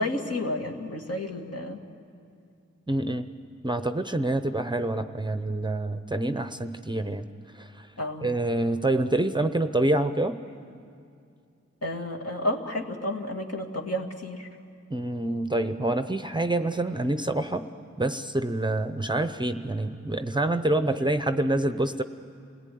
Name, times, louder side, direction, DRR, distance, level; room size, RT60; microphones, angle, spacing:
voice 1, 0.0-1.8 8.0-8.3 11.8-14.5, left 1 dB, 55° left, 2 dB, 2.1 m, -31 dB
voice 2, 2.9-3.3 3.6-7.3 7.5-7.9 8.2-10.4 14.9-17.7 18.0-22.0, right 1 dB, 15° right, 9 dB, 0.7 m, -27 dB
27.5 x 17.5 x 9.4 m, 2.4 s
wide cardioid pair, 65°, 29 cm